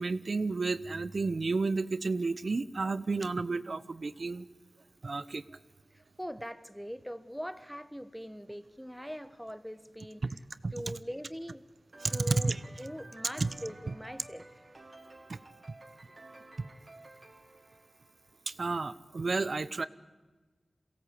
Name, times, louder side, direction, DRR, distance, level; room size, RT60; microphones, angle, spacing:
voice 1, 0.0-4.5 5.0-5.4 10.6-10.9 12.0-12.6 13.4-13.5 15.3-15.4 18.5-19.9, right 3 dB, 60° right, 16 dB, 0.8 m, -31 dB
voice 2, 5.9-10.3 10.7-11.6 12.1-14.5, equal, ahead, 13 dB, 1.3 m, -42 dB
sound 1, 11.9-18.6, right 2 dB, 45° right, 2.3 m, -53 dB
22.5 x 17.0 x 8.2 m, 1.3 s
cardioid pair, 45°, 0 cm